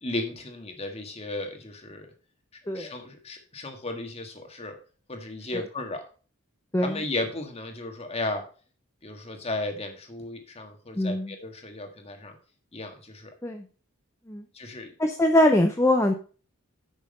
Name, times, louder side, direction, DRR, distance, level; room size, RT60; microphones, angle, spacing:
voice 1, 0.0-2.1 2.6-4.8 5.1-6.0 6.8-8.4 9.0-12.4 12.7-13.3 14.5-14.9, left 2 dB, 30° left, 5 dB, 1.7 m, -35 dB
voice 2, 10.9-11.3 13.4-13.6 14.3-14.4 15.0-16.1, left 1 dB, 15° left, 4 dB, 0.7 m, -22 dB
8.9 x 6.3 x 5.4 m, 0.38 s
head